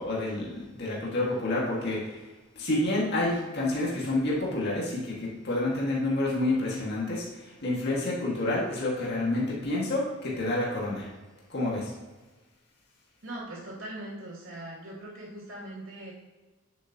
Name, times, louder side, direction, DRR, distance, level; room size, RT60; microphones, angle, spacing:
voice 1, 0.0-2.2 2.5-11.1 11.5-11.9, left 2 dB, 55° left, -4 dB, 2.0 m, -29 dB
voice 2, 13.2-16.1, right 1 dB, 75° right, -5 dB, 2.6 m, -40 dB
9.9 x 7.1 x 3.0 m, 1.2 s
head